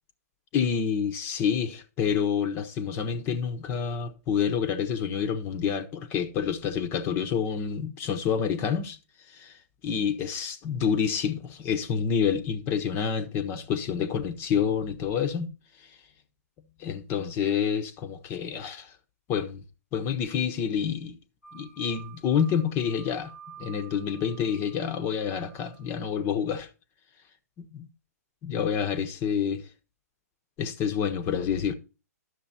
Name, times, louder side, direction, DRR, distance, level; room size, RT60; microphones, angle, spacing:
voice 1, 0.5-9.0 9.3-15.5 15.8-16.0 16.8-18.9 19.3-19.6 19.9-21.2 21.5-23.3 23.6-26.7 27.6-27.9 28.4-29.7 30.6-31.7, left 7 dB, 25° left, 1.0 m, -28 dB
sound 1, 21.4-26.3, right 8 dB, 90° left, 1.8 m, -51 dB
11.0 x 6.8 x 4.2 m
figure-of-eight pair, 120°, 9 cm